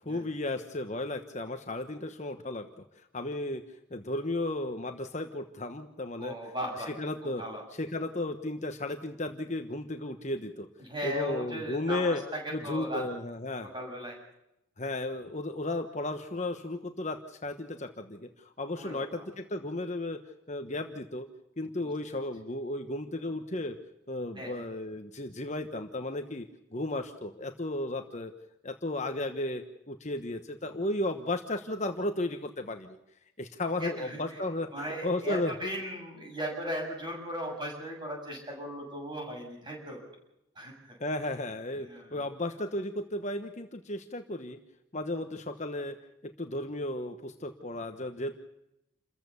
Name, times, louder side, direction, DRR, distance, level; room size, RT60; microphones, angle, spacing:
voice 1, 0.0-2.7 3.1-3.6 3.9-6.4 6.9-7.4 7.8-10.7 11.0-12.2 12.5-13.7 14.8-20.2 20.5-21.3 21.6-23.8 24.1-26.5 26.7-28.3 28.6-33.0 33.4-35.5 41.0-44.6 44.9-46.0 46.2-48.3, left 2 dB, 35° left, 6 dB, 1.2 m, -34 dB
voice 2, 6.2-6.9 7.4-7.6 10.8-13.0 13.7-14.2 18.8-19.3 24.4-24.7 33.8-34.4 34.7-40.0 40.6-41.0 41.8-42.2, equal, 20° right, 0 dB, 7.5 m, -37 dB
28.5 x 14.5 x 7.0 m, 0.85 s
head